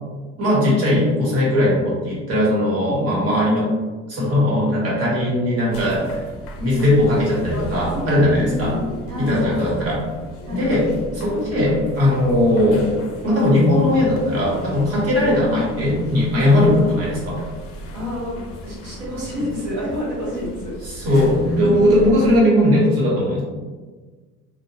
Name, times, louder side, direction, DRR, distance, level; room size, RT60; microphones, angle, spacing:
voice 1, 0.4-3.7 4.1-6.2 6.6-8.8 9.2-10.0 10.5-10.9 11.1-12.9 13.2-17.4 20.8-23.4, left 1 dB, 50° right, -6 dB, 1.1 m, -18 dB
sound 1, 5.7-22.4, equal, 45° left, 0.4 m, -35 dB
voice 2, 7.9-9.6 10.4-10.7 16.6-16.8 17.9-20.8 21.0-21.9, left 1 dB, 70° right, -6 dB, 1.2 m, -29 dB
2.1 x 2.1 x 2.8 m, 1.4 s
cardioid pair, 120°, 31 cm